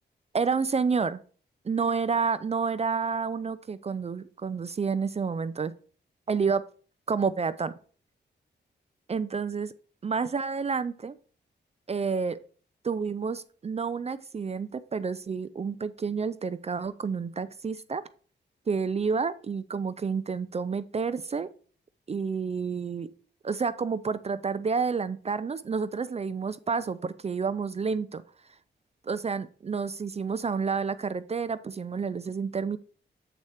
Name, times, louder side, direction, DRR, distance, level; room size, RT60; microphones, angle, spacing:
voice 1, 0.3-1.2 1.6-5.7 6.3-6.7 7.1-7.7 9.1-9.7 10.0-11.1 11.9-12.4 12.8-18.0 18.7-21.5 22.1-23.1 23.4-28.2 29.1-32.8, right 5 dB, 35° right, 13 dB, 0.4 m, -29 dB
8.0 x 4.2 x 4.8 m, 0.42 s
cardioid pair, 95°, 19 cm